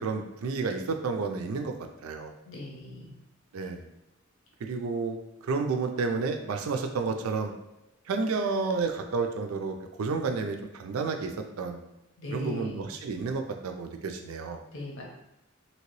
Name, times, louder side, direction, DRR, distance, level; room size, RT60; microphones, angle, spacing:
voice 1, 0.0-1.7 2.0-2.3 3.5-3.8 4.6-5.2 5.4-7.5 8.1-11.3 11.6-11.8 12.3-14.6, right 4 dB, 80° right, 5 dB, 0.4 m, -30 dB
voice 2, 2.4-3.2 12.2-12.9 14.7-15.0, left 1 dB, 60° left, -1 dB, 0.8 m, -39 dB
2.9 x 2.8 x 3.0 m, 0.92 s
head